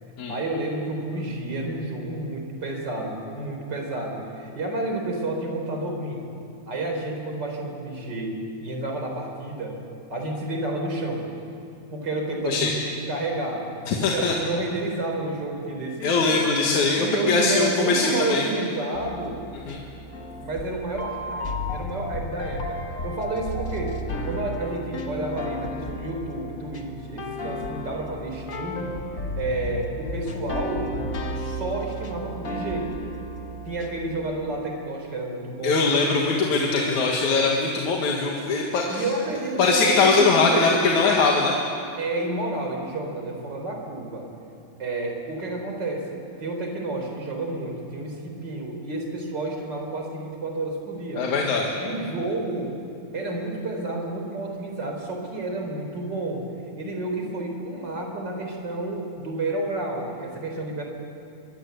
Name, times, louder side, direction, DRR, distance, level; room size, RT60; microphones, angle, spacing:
voice 1, 0.3-6.2 6.7-9.8 10.1-11.3 11.9-12.7 13.1-13.7 14.0-16.2 17.0-19.4 20.4-31.0 31.4-32.9 33.7-36.2 36.5-36.9 38.9-40.8 42.0-44.3 44.8-51.3 51.8-52.7 53.1-56.5 56.8-60.8, right 2 dB, 35° right, 2 dB, 4.5 m, -30 dB
voice 2, 13.9-14.3 16.0-18.4 19.7-19.8 35.6-39.1 39.6-41.5 51.2-51.7, left 4 dB, 75° left, -1 dB, 3.2 m, -21 dB
sound 1, 18.9-34.6, left 1 dB, 35° left, 1.5 m, -33 dB
23.5 x 23.0 x 8.2 m, 2.6 s
omnidirectional pair, 3.4 m